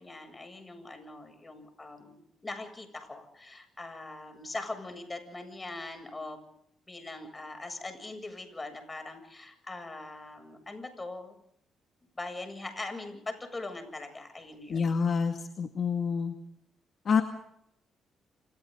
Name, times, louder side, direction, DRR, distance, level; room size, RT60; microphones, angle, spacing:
voice 1, 0.0-6.4 6.9-11.3 12.2-14.9, left 2 dB, 20° left, 7 dB, 7.7 m, -41 dB
voice 2, 14.7-16.4 17.1-17.2, left 6 dB, 50° left, 4 dB, 2.2 m, -27 dB
29.0 x 27.5 x 4.0 m, 0.73 s
cardioid pair, 90°, 0 cm